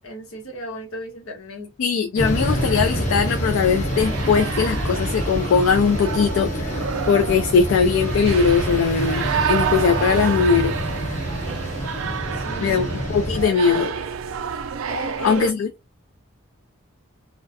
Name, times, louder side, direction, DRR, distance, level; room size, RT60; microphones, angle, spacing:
voice 1, 0.0-1.7 12.4-12.9 13.3-14.0 14.9-15.4, equal, 80° left, 1.1 m, -35 dB
voice 2, 1.8-10.7 12.6-13.9 15.2-15.7, left 6 dB, 65° left, 0.3 m, -20 dB
sound 1, 2.2-13.5, equal, 35° left, 0.9 m, -26 dB
sound 2, 2.4-15.5, right 7 dB, 70° right, 0.3 m, -30 dB
2.3 x 2.1 x 2.6 m
head